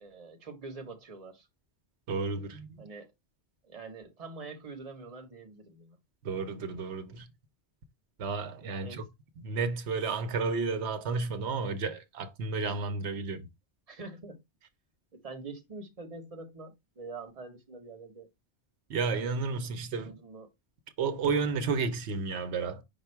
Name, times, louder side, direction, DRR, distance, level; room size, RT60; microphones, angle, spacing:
voice 1, 0.0-1.5 2.8-3.1 3.6-6.0 8.8-9.0 13.9-14.4 15.1-18.3 19.9-20.5, right 3 dB, 35° right, 1.0 m, -45 dB
voice 2, 2.1-2.8 6.2-7.3 8.2-9.0 9.4-13.5 18.9-20.1 21.0-22.8, right 4 dB, 85° right, 0.9 m, -32 dB
5.4 x 2.2 x 4.4 m
omnidirectional pair, 1.1 m